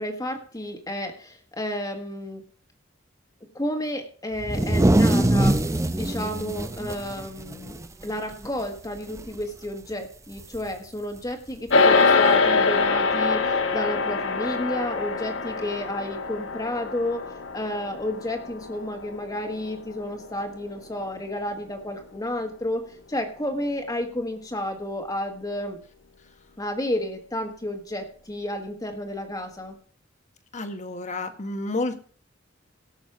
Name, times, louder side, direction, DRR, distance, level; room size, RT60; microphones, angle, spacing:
voice 1, 0.0-2.4 3.5-5.6 5.9-7.8 8.0-17.2 17.5-22.8 23.1-25.8 26.6-29.7, left 1 dB, 20° left, 4 dB, 1.6 m, -31 dB
sound 1, 4.4-8.1 8.4-8.6 9.0-9.4 10.5-10.6 11.7-11.8, right 1 dB, 15° right, 0.6 m, -22 dB
sound 2, 11.7-21.2, left 4 dB, 85° left, 1.1 m, -24 dB
voice 2, 30.5-32.0, left 2 dB, 40° left, 8 dB, 1.3 m, -30 dB
17.5 x 6.3 x 4.8 m, 0.43 s
head